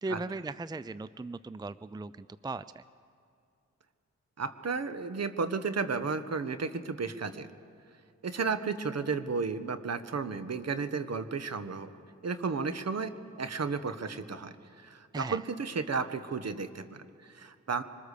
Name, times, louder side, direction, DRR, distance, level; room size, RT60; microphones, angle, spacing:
voice 1, 0.0-2.8 15.1-15.4, right 3 dB, 15° right, 16 dB, 0.5 m, -38 dB
voice 2, 4.4-7.5 8.2-11.9 12.2-17.8, right 4 dB, 55° right, 11 dB, 1.4 m, -33 dB
25.0 x 20.5 x 6.8 m, 2.3 s
supercardioid pair, 45°, 31 cm